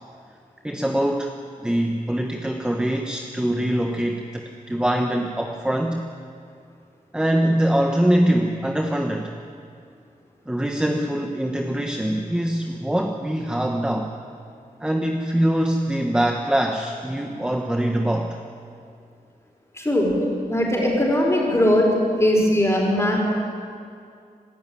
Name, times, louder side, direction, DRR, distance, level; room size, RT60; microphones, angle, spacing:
voice 1, 0.6-1.3 1.6-6.0 7.1-9.3 10.5-14.1 14.8-18.4, right 1 dB, 5° right, 3 dB, 1.2 m, -23 dB
voice 2, 19.7-20.1 20.5-21.9 22.2-23.2, left 1 dB, 20° left, -2 dB, 5.7 m, -19 dB
26.0 x 13.5 x 9.2 m, 2.3 s
wide cardioid pair, 115°, 15 cm